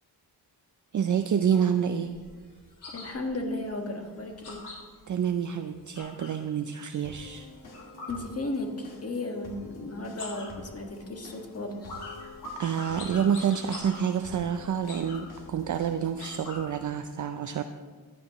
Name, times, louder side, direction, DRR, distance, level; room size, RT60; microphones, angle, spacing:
voice 1, 0.9-2.1 5.1-7.5 12.6-17.6, right 8 dB, 50° right, 8 dB, 0.5 m, -28 dB
sound 1, 1.1-6.4 6.8-8.9 9.2-9.7 10.0-16.9, left 2 dB, 85° left, 3.9 m, -45 dB
voice 2, 2.9-4.7 8.1-12.0, left 2 dB, 35° left, 3 dB, 1.6 m, -35 dB
sound 2, 7.0-16.6, left 2 dB, 70° left, 1.9 m, -48 dB
14.5 x 10.5 x 3.0 m, 1.4 s
wide cardioid pair, 105°, 39 cm